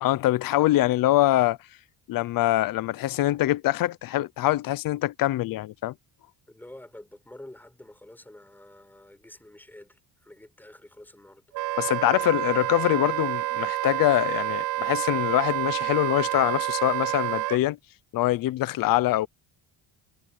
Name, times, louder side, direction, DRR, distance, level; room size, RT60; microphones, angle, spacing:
voice 1, 0.0-1.6 2.1-5.9 11.8-17.8 18.1-19.3, left 15 dB, 50° left, 0.6 m, -24 dB
voice 2, 6.5-11.4, left 1 dB, 5° left, 5.4 m, -48 dB
Wind instrument woodwind instrument, 11.5-17.6, right 16 dB, 50° right, 0.4 m, -28 dB
cardioid pair, 175°, 43 cm